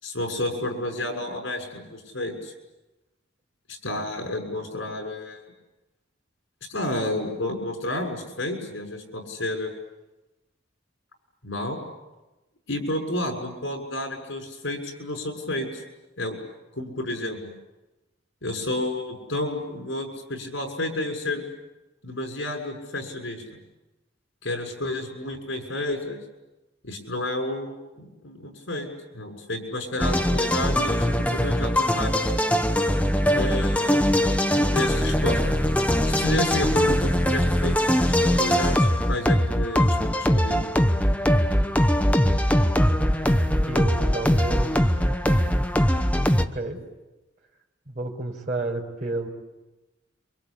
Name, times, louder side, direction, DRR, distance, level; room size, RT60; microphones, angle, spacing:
voice 1, 0.0-2.5 3.7-5.4 6.7-9.7 11.4-11.8 12.7-15.8 16.2-16.4 16.7-17.5 18.4-21.5 22.0-23.6 24.4-26.2 26.8-32.3 33.3-34.0 34.5-35.4 36.0-40.6, left 1 dB, 80° left, 4 dB, 6.4 m, -31 dB
sound 1, 30.0-46.5, equal, 10° left, 1.0 m, -21 dB
voice 2, 43.6-44.9 46.5-46.8 47.9-49.3, right 2 dB, 40° right, -2 dB, 5.0 m, -30 dB
28.0 x 25.0 x 8.6 m, 1.1 s
head